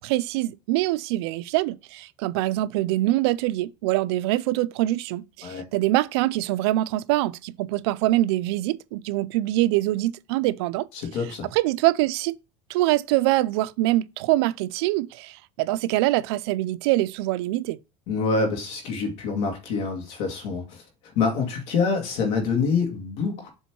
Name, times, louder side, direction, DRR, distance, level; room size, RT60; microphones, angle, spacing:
voice 1, 0.0-10.9 11.5-12.4 12.7-17.8, right 17 dB, 90° right, 0.4 m, -24 dB
voice 2, 10.9-11.5 18.1-20.8 21.2-23.5, left 4 dB, 70° left, 1.9 m, -26 dB
7.2 x 3.1 x 4.5 m
cardioid pair, 145°, 13 cm